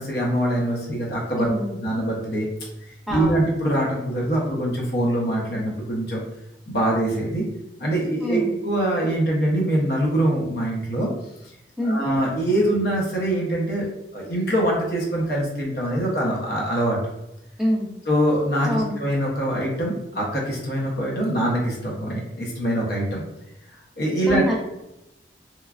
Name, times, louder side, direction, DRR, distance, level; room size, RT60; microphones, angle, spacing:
voice 1, 0.0-1.5 1.8-2.5 3.1-6.2 6.7-7.5 7.8-11.1 11.8-13.9 14.1-17.0 18.1-23.2 24.0-24.4, right 1 dB, 60° left, -3 dB, 0.7 m, -23 dB
voice 2, 1.4-1.8 3.1-3.4 8.2-8.5 11.8-12.1 17.6-17.9 18.6-19.0 24.3-24.6, equal, ahead, -3 dB, 0.4 m, -25 dB
3.0 x 2.3 x 2.3 m, 0.90 s
head